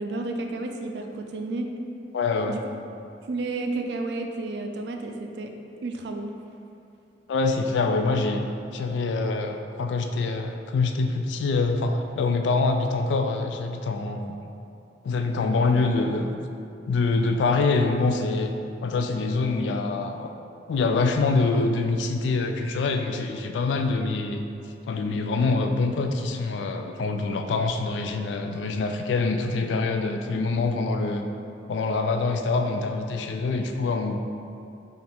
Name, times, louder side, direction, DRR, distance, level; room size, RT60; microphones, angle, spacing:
voice 1, 0.0-1.7 2.5-2.6 3.2-5.5 5.8-6.3, right 2 dB, 70° right, 4 dB, 0.4 m, -31 dB
voice 2, 2.1-2.6 7.3-8.4 8.7-14.3 15.0-16.4 16.9-18.5 18.8-20.3 20.7-24.5 24.9-31.3 31.7-34.2, left 3 dB, 85° left, 5 dB, 0.3 m, -25 dB
4.9 x 2.4 x 3.4 m, 2.6 s
head